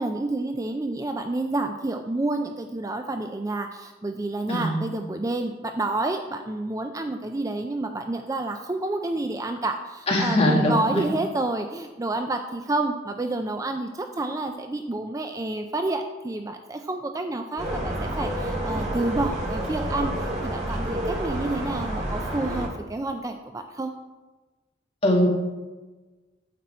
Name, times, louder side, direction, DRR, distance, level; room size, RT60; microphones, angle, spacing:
voice 1, 0.0-23.9, right 2 dB, 15° right, 6 dB, 0.4 m, -29 dB
voice 2, 4.5-4.9 10.1-11.1 25.0-25.3, left 1 dB, 30° left, -1 dB, 1.8 m, -22 dB
sound 1, 17.6-22.7, right 1 dB, 35° right, 2.1 m, -29 dB
9.3 x 7.5 x 4.3 m, 1.2 s
head